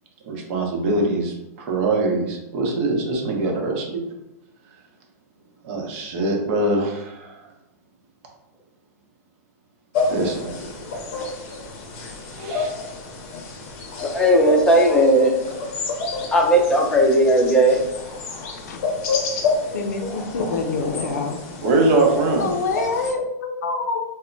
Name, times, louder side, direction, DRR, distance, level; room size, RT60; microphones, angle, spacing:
voice 1, 0.2-4.0 5.6-7.4 10.1-10.9 12.3-12.7 21.6-22.5, right 2 dB, 50° right, 1 dB, 0.8 m, -23 dB
sound 1, 9.9-23.1, left 3 dB, 50° left, 0.6 m, -29 dB
voice 2, 14.0-15.3 16.3-17.8, right 1 dB, 10° left, -1 dB, 0.5 m, -16 dB
voice 3, 19.7-21.4 22.4-24.0, left 4 dB, 85° left, 5 dB, 0.4 m, -26 dB
2.1 x 2.1 x 3.7 m, 0.94 s
hypercardioid pair, 125°, 9 cm